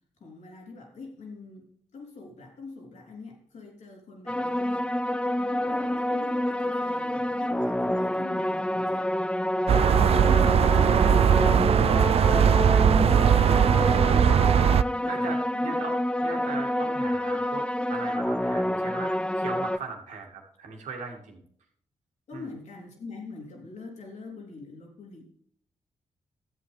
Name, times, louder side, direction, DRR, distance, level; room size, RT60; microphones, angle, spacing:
voice 1, 0.2-1.6 1.9-4.9 5.3-9.1 9.9-11.3 11.9-14.4 14.9-15.8 22.3-25.2, left 4 dB, 75° left, 0 dB, 3.2 m, -43 dB
sound 1, 4.3-19.8, left 1 dB, 10° left, 0.5 m, -28 dB
sound 2, 9.7-14.8, right 8 dB, 55° right, 0.3 m, -20 dB
voice 2, 15.1-16.0 16.2-21.4 22.3-22.4, right 5 dB, 80° right, 2 dB, 2.1 m, -39 dB
13.0 x 8.0 x 3.4 m, 0.63 s
supercardioid pair, 45°, 12 cm